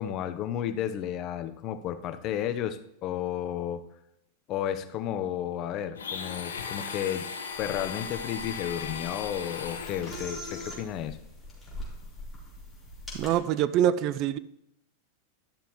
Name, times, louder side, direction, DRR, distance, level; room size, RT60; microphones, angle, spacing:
voice 1, 0.0-3.9 4.5-7.3 7.6-11.2, left 10 dB, 45° left, 11 dB, 0.7 m, -32 dB
Domestic sounds home sounds, 5.9-10.4, left 6 dB, 90° left, 1.0 m, -37 dB
sound 1, 7.5-13.4, left 1 dB, 5° left, 3.6 m, -43 dB
voice 2, 13.1-14.4, right 11 dB, 45° right, 17 dB, 0.4 m, -25 dB
11.5 x 6.8 x 3.0 m, 0.80 s
hypercardioid pair, 110°, 0 cm